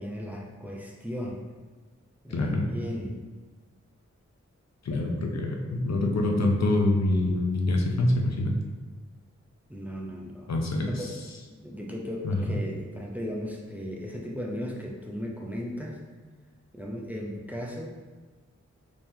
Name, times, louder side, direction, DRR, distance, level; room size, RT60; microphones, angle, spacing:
voice 1, 0.0-1.4 2.2-3.2 9.7-10.5 10.9-11.1 11.6-16.0 16.7-17.9, equal, 5° right, -2 dB, 0.6 m, -36 dB
voice 2, 2.3-2.7 4.8-8.5 10.5-10.9 12.2-12.4, left 2 dB, 65° left, 1 dB, 0.5 m, -25 dB
3.6 x 3.0 x 2.7 m, 1.3 s
cardioid pair, 45°, 29 cm